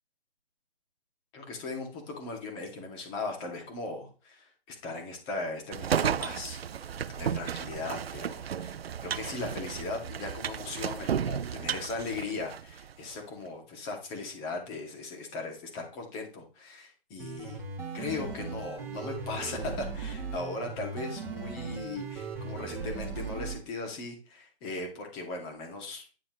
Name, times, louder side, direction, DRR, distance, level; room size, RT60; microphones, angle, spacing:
voice 1, 1.3-6.9 7.2-17.6 17.9-26.1, left 3 dB, 20° left, 2 dB, 2.3 m, -38 dB
sound 1, 5.7-12.9, right 8 dB, 80° right, 0.7 m, -33 dB
sound 2, 17.2-23.6, right 4 dB, 10° right, 2.2 m, -38 dB
10.5 x 7.7 x 3.1 m, 0.34 s
hypercardioid pair, 160°, 30 cm